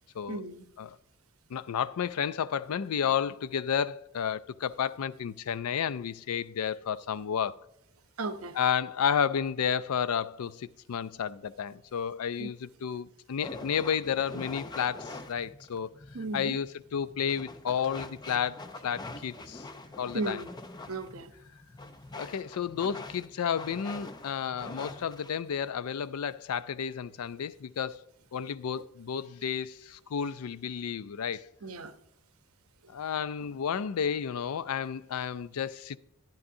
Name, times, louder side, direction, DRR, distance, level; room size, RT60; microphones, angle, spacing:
voice 1, 0.3-0.6 8.2-8.6 12.4-12.5 16.1-16.6 20.1-20.5 20.9-21.3 31.6-31.9, right 3 dB, 75° right, 0.8 m, -35 dB
voice 2, 1.5-7.6 8.5-16.0 16.3-19.7 20.0-20.4 22.1-28.0 28.3-31.5 32.9-36.0, left 7 dB, 80° left, 0.4 m, -32 dB
sound 1, 13.4-25.4, left 2 dB, 20° left, 0.6 m, -44 dB
11.5 x 10.5 x 2.7 m
head